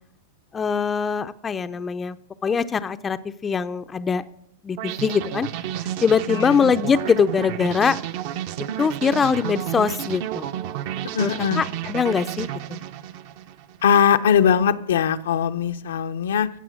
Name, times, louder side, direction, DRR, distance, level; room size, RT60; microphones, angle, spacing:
voice 1, 0.5-2.2 2.4-4.2 4.6-5.5 5.8-8.0 8.8-10.5 11.2-11.3 11.6-12.8, left 6 dB, 15° left, 11 dB, 0.5 m, -22 dB
sound 1, 4.8-13.8, right 11 dB, 50° right, 0.8 m, -31 dB
voice 2, 6.3-6.7 11.1-11.6 13.8-16.5, left 8 dB, 80° left, 9 dB, 0.7 m, -20 dB
16.0 x 6.6 x 6.3 m, 0.76 s
hypercardioid pair, 140°, 0 cm